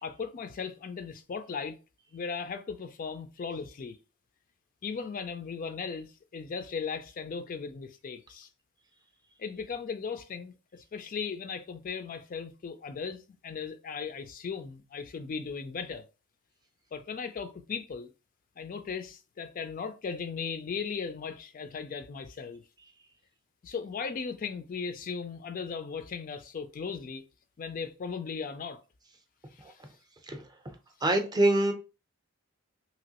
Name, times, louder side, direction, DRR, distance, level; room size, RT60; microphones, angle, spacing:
voice 1, 0.0-1.8 2.1-4.0 4.8-8.5 9.4-16.0 16.9-18.1 18.6-22.6 23.6-27.2 27.6-28.8 29.5-29.8, left 5 dB, 40° left, 0.3 m, -37 dB
voice 2, 31.0-31.7, right 1 dB, 20° right, 0.5 m, -25 dB
3.0 x 2.8 x 2.8 m
head